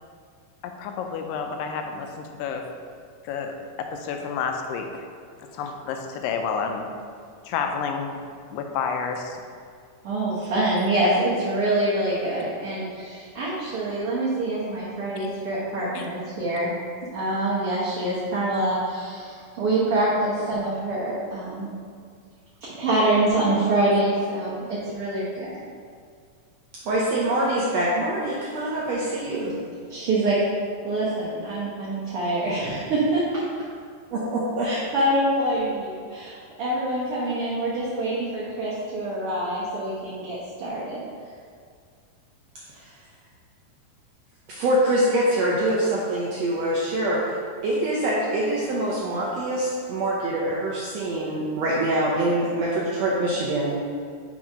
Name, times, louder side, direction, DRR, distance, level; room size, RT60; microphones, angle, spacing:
voice 1, 0.6-2.7 3.2-5.1 5.5-6.9 7.5-8.2 8.5-9.4 16.0-16.1, left 6 dB, 85° left, 4 dB, 2.2 m, -30 dB
voice 2, 10.0-16.7 17.1-21.7 22.7-25.6 29.9-30.4 30.8-33.4 34.1-34.2 34.6-41.0, right 1 dB, 65° right, -9 dB, 1.5 m, -25 dB
voice 3, 26.8-29.5 34.1-34.7 42.7-42.9 44.5-47.2 47.6-53.8, right 1 dB, 80° right, -5 dB, 1.5 m, -24 dB
6.1 x 4.0 x 4.8 m, 2.2 s
omnidirectional pair, 3.8 m